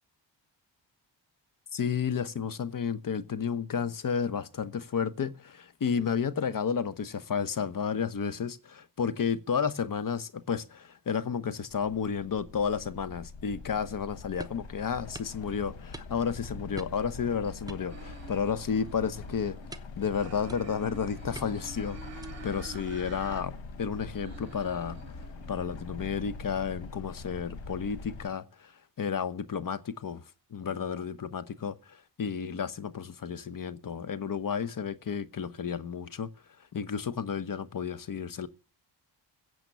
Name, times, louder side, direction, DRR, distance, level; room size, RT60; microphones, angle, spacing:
voice 1, 1.7-19.6 20.0-25.0 25.5-28.7 29.0-30.2 30.5-36.3 36.7-38.5, left 6 dB, 45° left, 1.1 m, -32 dB
sound 1, 11.7-28.3, left 3 dB, 75° left, 1.8 m, -43 dB
sound 2, 14.4-14.7 15.1-15.4 15.9-16.4 16.8-17.1 17.7-18.4 18.8-19.0 19.7-20.0 20.5-20.9 21.3-21.7 22.2-22.5, right 2 dB, 10° right, 0.9 m, -46 dB
sound 3, 17.9-19.7 20.1-23.4 23.7-26.3, right 6 dB, 35° right, 3.1 m, -49 dB
15.5 x 7.8 x 7.0 m
cardioid pair, 85°, 46 cm